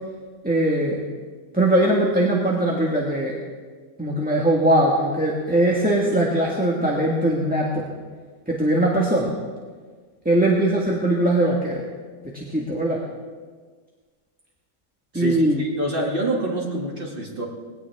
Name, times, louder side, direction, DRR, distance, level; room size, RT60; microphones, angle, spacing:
voice 1, 0.4-1.0 1.5-3.3 4.0-7.9 8.5-9.3 10.2-11.8 12.3-13.0 15.1-15.6, right 1 dB, 5° right, -3 dB, 1.7 m, -20 dB
voice 2, 15.1-17.4, right 1 dB, 40° right, -2 dB, 2.7 m, -26 dB
21.0 x 17.5 x 3.6 m, 1.5 s
omnidirectional pair, 1.4 m